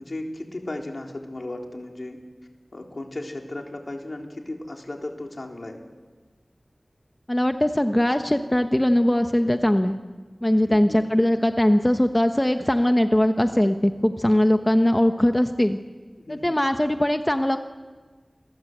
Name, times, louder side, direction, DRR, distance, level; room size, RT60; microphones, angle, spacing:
voice 1, 0.0-2.2 2.7-5.8 10.7-11.0 16.2-16.6, left 1 dB, 60° left, 2 dB, 3.8 m, -35 dB
voice 2, 7.3-10.0 10.4-15.8 16.3-17.6, left 1 dB, 20° left, 6 dB, 1.1 m, -20 dB
28.5 x 21.5 x 8.1 m, 1.4 s
wide cardioid pair, 50°, 0 cm